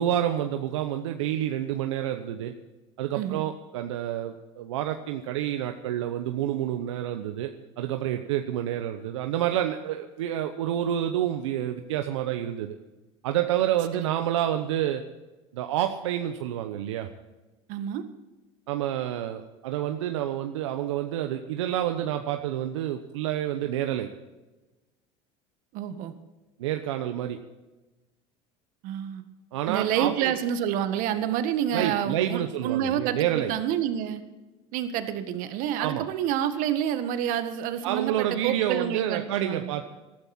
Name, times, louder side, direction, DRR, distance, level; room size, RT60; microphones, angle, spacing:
voice 1, 0.0-2.5 3.0-7.5 7.8-12.8 13.2-15.0 15.5-17.1 18.7-24.1 26.6-27.4 29.5-30.3 31.7-33.5 35.8-36.1 37.8-39.9, right 11 dB, 85° right, 6 dB, 0.9 m, -28 dB
voice 2, 17.7-18.0 25.7-26.1 28.8-29.2 29.7-34.2 34.7-39.7, right 10 dB, 65° right, 9 dB, 1.7 m, -28 dB
19.0 x 13.0 x 4.4 m, 1.1 s
hypercardioid pair, 85°, 15 cm